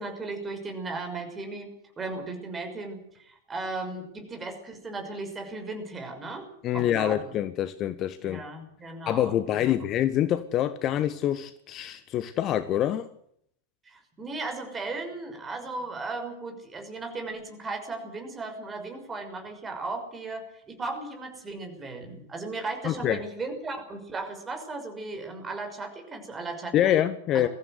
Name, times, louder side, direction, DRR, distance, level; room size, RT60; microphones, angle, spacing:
voice 1, 0.0-6.5 6.7-7.3 8.2-9.7 13.9-26.9 27.3-27.4, right 3 dB, 20° right, 5 dB, 6.0 m, -36 dB
voice 2, 6.6-8.4 9.1-13.1 22.8-23.2 26.7-27.5, left 11 dB, 35° left, 13 dB, 1.1 m, -26 dB
22.0 x 15.0 x 8.1 m, 0.68 s
figure-of-eight pair, 90°, 0 cm